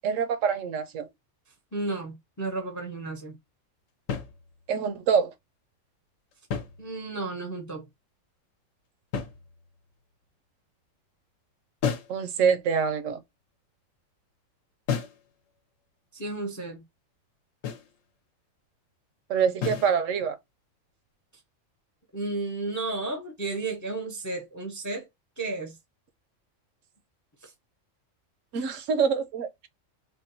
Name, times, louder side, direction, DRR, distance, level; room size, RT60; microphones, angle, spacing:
voice 1, 0.0-1.1 4.7-5.3 12.1-13.2 19.3-20.4 28.5-29.7, right 6 dB, 75° right, 1.0 m, -25 dB
voice 2, 1.7-3.3 6.8-7.9 16.1-16.8 22.1-25.1 25.4-25.7 27.4-27.5 28.5-28.6, right 3 dB, 25° left, 0.4 m, -33 dB
sound 1, 4.1-4.9 6.3-7.3 9.1-9.9 11.8-12.2 14.9-15.3 17.6-18.0 19.6-20.0, left 7 dB, 75° left, 1.0 m, -33 dB
3.6 x 2.2 x 2.6 m
omnidirectional pair, 1.4 m